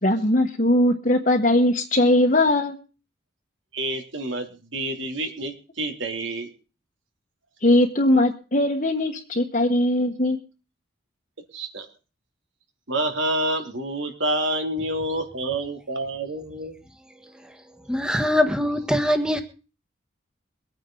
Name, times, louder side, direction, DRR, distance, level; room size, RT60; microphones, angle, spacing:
voice 1, 0.0-2.7 7.6-10.4, left 1 dB, 45° left, 1 dB, 1.4 m, -20 dB
voice 2, 3.7-6.5 11.5-11.9 12.9-16.7, right 1 dB, 80° right, 4 dB, 3.1 m, -28 dB
voice 3, 17.2-19.4, left 1 dB, 5° right, 8 dB, 1.4 m, -24 dB
23.5 x 9.2 x 3.9 m, 0.34 s
head